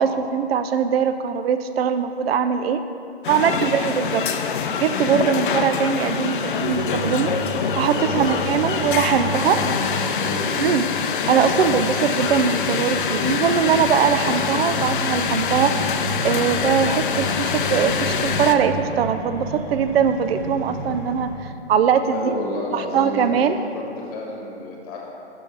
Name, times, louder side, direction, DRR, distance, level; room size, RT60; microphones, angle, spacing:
voice 1, 0.0-2.8 3.3-4.2 4.8-7.3 7.8-9.6 10.6-22.3 22.7-23.6, right 7 dB, 65° right, 10 dB, 0.4 m, -21 dB
sound 1, 3.2-18.6, left 6 dB, 50° left, 0.5 m, -25 dB
sound 2, 6.6-21.3, right 1 dB, 45° right, 1.6 m, -32 dB
voice 2, 7.9-8.9 9.2-9.8 10.2-10.4 22.1-23.3 23.7-25.1, left 2 dB, 35° left, -2 dB, 1.5 m, -31 dB
6.4 x 5.2 x 5.4 m, 2.5 s
hypercardioid pair, 140°, 33 cm